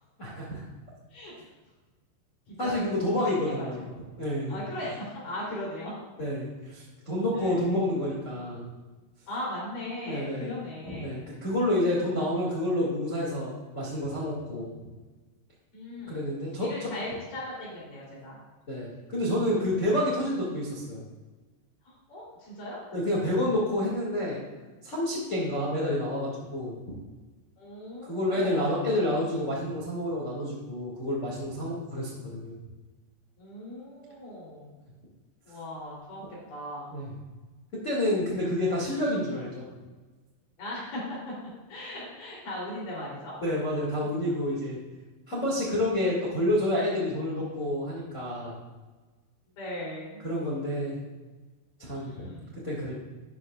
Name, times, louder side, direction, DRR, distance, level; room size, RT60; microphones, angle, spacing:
voice 1, 0.2-0.6 2.6-3.9 4.2-4.6 6.2-8.6 10.0-10.5 10.9-14.7 16.1-16.9 18.7-21.0 22.9-24.4 24.8-26.8 28.1-32.6 36.9-37.1 37.8-39.6 43.4-44.8 45.3-48.6 50.2-51.0 51.8-52.1 52.6-53.0, left 1 dB, 80° left, -6 dB, 0.6 m, -29 dB
voice 2, 2.5-2.9 3.5-3.7 3.9-4.1 4.5-5.9 7.3-7.8 9.3-11.3 15.7-16.2 16.6-18.4 19.9-20.0 21.9-22.8 27.6-28.7 33.4-34.8 35.5-36.2 36.5-37.0 40.6-41.2 41.7-43.3 49.6-50.2 51.9-52.6, left 1 dB, 50° left, -5 dB, 4.4 m, -38 dB
11.5 x 9.5 x 2.4 m, 1.3 s
omnidirectional pair, 5.5 m